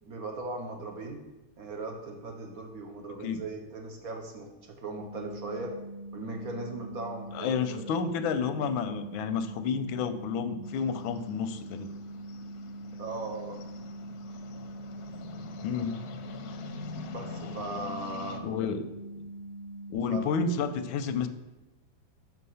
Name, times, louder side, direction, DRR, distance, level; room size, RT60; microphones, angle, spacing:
voice 1, 0.0-1.2 1.6-5.8 6.1-7.8 13.0-13.6 17.1-18.4 20.1-20.3, right 2 dB, 60° right, 2 dB, 1.1 m, -38 dB
sound 1, 5.0-19.9, right 1 dB, 80° right, 2.3 m, -43 dB
voice 2, 7.3-11.9 15.6-16.0 18.4-18.9 19.9-21.3, left 6 dB, 90° left, 10 dB, 1.4 m, -30 dB
sound 2, 10.6-18.4, left 5 dB, 70° left, 1.0 m, -45 dB
6.4 x 4.6 x 5.5 m, 1.0 s
omnidirectional pair, 2.1 m